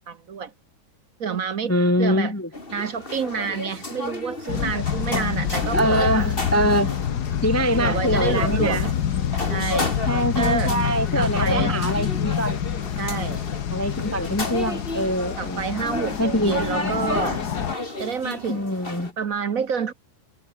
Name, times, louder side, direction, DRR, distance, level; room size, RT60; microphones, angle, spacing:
voice 1, 0.1-0.5 1.2-2.3 2.7-6.3 7.8-8.9 9.5-9.9 10.3-11.8 13.0-13.4 15.4-17.4 18.0-18.7 19.2-19.9, right 6 dB, 50° right, 1.3 m, -28 dB
voice 2, 1.7-2.5 5.7-6.9 7.4-8.8 10.1-12.6 13.7-15.7 16.2-16.9 18.5-19.1, equal, 10° left, 0.7 m, -23 dB
sound 1, 2.5-19.1, left 2 dB, 25° left, 3.8 m, -32 dB
sound 2, 4.5-17.7, left 9 dB, 60° left, 1.6 m, -27 dB
omnidirectional pair, 2.1 m